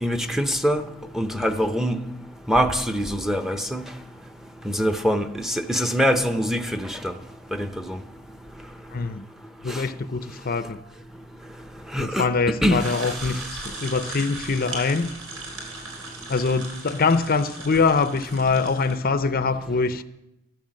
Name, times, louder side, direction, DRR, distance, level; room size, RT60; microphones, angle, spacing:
voice 1, 0.0-0.8 1.1-2.0 2.5-3.8 4.6-7.1 7.5-8.0 9.7-9.8 11.9-12.8, equal, ahead, 0.7 m, -24 dB
voice 2, 8.9-9.3 9.6-10.8 12.0-15.1 16.3-20.0, left 4 dB, 40° left, 0.6 m, -23 dB
sound 1, 12.8-18.9, right 3 dB, 80° right, 4.0 m, -38 dB
13.5 x 13.0 x 7.6 m
head